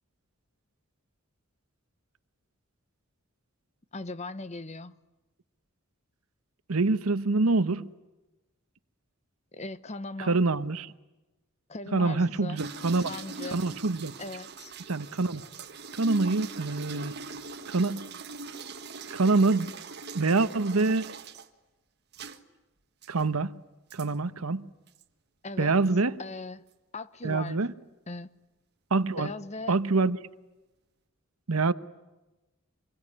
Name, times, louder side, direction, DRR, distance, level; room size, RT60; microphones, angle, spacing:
voice 1, 3.9-5.0 9.5-10.4 11.7-12.6 13.0-13.7 14.2-14.7 25.4-25.8 26.2-26.6 26.9-27.6 28.1-28.3 29.2-29.8, left 3 dB, 30° left, 0.9 m, -39 dB
voice 2, 6.7-7.9 10.3-10.9 11.9-13.1 13.5-14.1 14.9-15.4 15.9-17.2 17.7-18.1 19.1-19.7 20.1-21.0 23.1-23.5 23.9-24.7 25.6-26.2 27.2-27.7 28.9-29.3 29.7-30.2 31.5-31.7, right 3 dB, 90° right, 1.0 m, -25 dB
sound 1, 12.6-21.5 22.1-22.4 23.0-23.2 23.9-24.1 24.9-25.0, right 4 dB, 50° right, 1.6 m, -41 dB
26.5 x 22.5 x 9.8 m
head